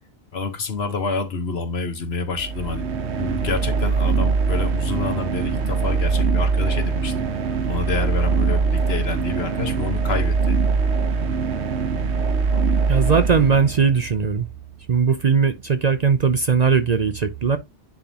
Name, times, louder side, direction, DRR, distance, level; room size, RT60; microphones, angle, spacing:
voice 1, 0.3-2.9 3.2-7.1 7.7-10.6 12.5-12.6, left 4 dB, 65° left, 1.4 m, -28 dB
sound 1, 2.3-14.1, right 4 dB, 75° right, 1.2 m, -22 dB
voice 2, 12.9-14.5 14.9-17.6, right 6 dB, 45° right, 0.6 m, -19 dB
10.5 x 3.5 x 2.9 m
omnidirectional pair, 1.1 m